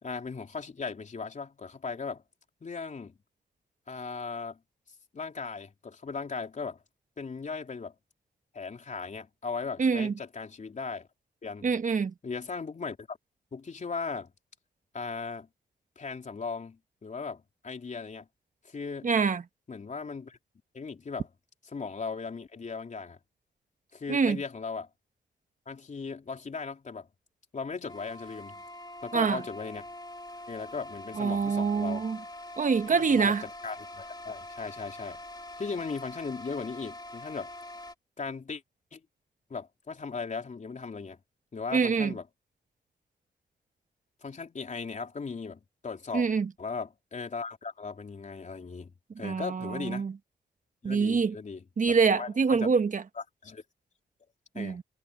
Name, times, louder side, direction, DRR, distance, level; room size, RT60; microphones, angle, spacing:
voice 1, 0.0-2.2 2.6-3.1 3.9-4.6 5.1-6.8 7.2-7.9 8.5-11.1 11.4-11.7 12.2-13.2 13.5-14.3 14.9-15.5 16.0-18.3 18.6-19.1 19.7-20.4 20.7-21.3 21.7-23.2 23.9-24.9 25.7-27.1 27.5-28.6 29.0-29.9 30.5-32.1 32.9-35.2 35.6-37.5 38.2-38.6 38.9-39.0 39.5-41.2 41.5-42.2 44.2-46.3 46.6-50.1 50.8-52.7 53.2-53.6 54.5-54.8, left 4 dB, 45° left, 3.7 m, -38 dB
voice 2, 9.8-10.1 11.6-12.1 19.0-19.4 24.1-24.4 29.1-29.4 31.2-32.2 32.6-33.4 41.7-42.1 46.1-46.5 49.2-50.1 50.8-51.3 51.8-53.0 54.6-54.8, right 5 dB, 50° right, 1.3 m, -25 dB
sound 1, 27.9-37.9, left 1 dB, 25° left, 3.0 m, -44 dB
cardioid pair, 75°, 17 cm